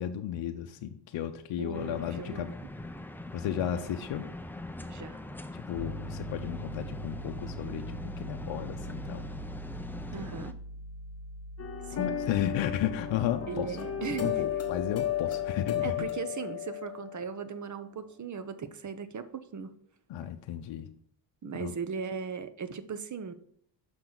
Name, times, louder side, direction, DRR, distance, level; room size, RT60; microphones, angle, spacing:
voice 1, 0.0-2.5 3.3-4.3 5.5-9.2 11.9-13.8 14.2-16.1 20.1-20.9 21.6-21.7, left 10 dB, 65° left, 5 dB, 0.7 m, -34 dB
voice 2, 1.6-2.5 4.9-5.2 10.1-10.5 11.9-12.2 13.5-14.4 15.8-19.7 21.4-23.3, right 6 dB, 35° right, 11 dB, 0.8 m, -38 dB
sound 1, 1.7-10.5, left 1 dB, 5° left, 0.4 m, -42 dB
Piano, 5.7-16.0, equal, 75° right, 3.1 m, -43 dB
sound 2, 11.6-17.5, left 10 dB, 30° left, 0.9 m, -34 dB
6.2 x 5.9 x 3.8 m, 0.66 s
cardioid pair, 85°, 48 cm